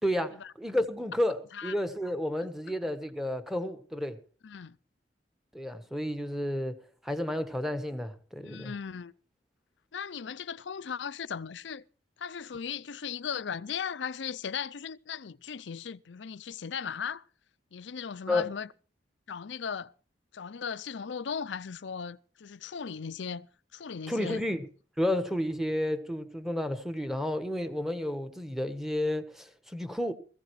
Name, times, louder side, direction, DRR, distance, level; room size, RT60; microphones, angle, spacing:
voice 1, 0.0-4.2 5.5-8.7 18.3-18.5 24.1-24.7 25.0-30.1, left 1 dB, ahead, 1.3 m, -31 dB
voice 2, 4.4-4.8 8.4-9.1 9.9-11.8 12.2-17.2 17.7-18.7 19.3-19.9 20.3-23.5 23.7-24.4, left 6 dB, 80° left, 0.6 m, -37 dB
19.5 x 15.5 x 3.2 m
head